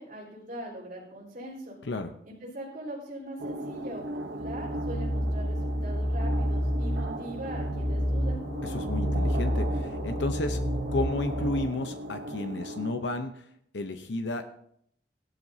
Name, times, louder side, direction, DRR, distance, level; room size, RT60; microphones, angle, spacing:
voice 1, 0.0-1.8 2.3-8.4, right 1 dB, 45° right, -9 dB, 4.2 m, -41 dB
sound 1, 3.4-12.9, right 1 dB, 75° right, 1.0 m, -37 dB
sound 2, 4.4-11.6, equal, 65° left, 3.3 m, -29 dB
voice 2, 8.6-10.6 10.9-13.5 13.7-14.4, left 2 dB, 85° left, 7 dB, 0.8 m, -32 dB
16.5 x 12.0 x 2.8 m, 0.69 s
head